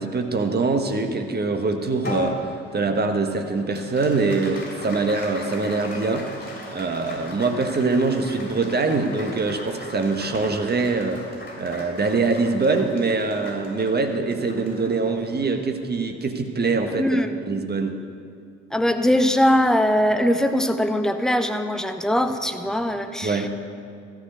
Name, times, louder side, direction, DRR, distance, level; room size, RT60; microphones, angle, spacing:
voice 1, 0.0-17.2 17.4-17.9 23.2-23.5, right 3 dB, 25° right, 5 dB, 1.4 m, -24 dB
Applause, 2.0-16.7, left 2 dB, 25° left, 3.6 m, -39 dB
voice 2, 17.0-17.4 18.7-23.4, equal, ahead, 7 dB, 0.9 m, -21 dB
13.5 x 6.5 x 8.1 m, 2.3 s
figure-of-eight pair, 50°, 35 cm